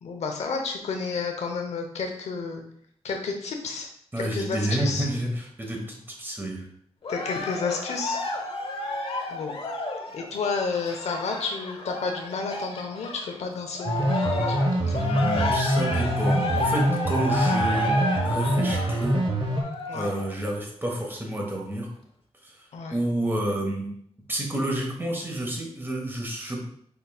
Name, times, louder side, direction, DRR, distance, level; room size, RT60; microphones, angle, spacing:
voice 1, 0.0-2.6 3.0-3.9 4.2-5.1 7.1-8.2 9.3-9.5 10.1-15.0 19.9-20.1 22.7-23.0, left 4 dB, 90° left, 3 dB, 0.9 m, -31 dB
voice 2, 4.1-6.7 14.9-17.9 18.2-19.2 19.9-21.9 22.9-23.9 24.3-26.6, right 1 dB, 20° right, 0 dB, 1.3 m, -29 dB
Cheering, 7.0-13.4 13.7-20.3 20.9-21.0, left 2 dB, 60° left, 0.8 m, -31 dB
sound 1, 13.9-19.6, right 1 dB, 50° right, 1.2 m, -25 dB
5.6 x 4.0 x 2.4 m, 0.64 s
wide cardioid pair, 95°, 11 cm